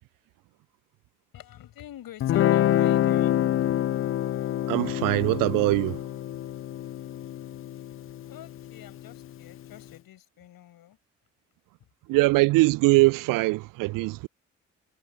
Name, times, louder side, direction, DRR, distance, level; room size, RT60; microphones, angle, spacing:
voice 1, 1.3-3.8 8.3-11.0 11.8-11.9, left 12 dB, 60° left, 6.6 m, -47 dB
Guitar, 2.2-9.3, left 12 dB, 35° left, 0.5 m, -26 dB
voice 2, 4.7-6.0 12.1-14.3, right 22 dB, 60° right, 0.5 m, -22 dB
figure-of-eight pair, 40°, 39 cm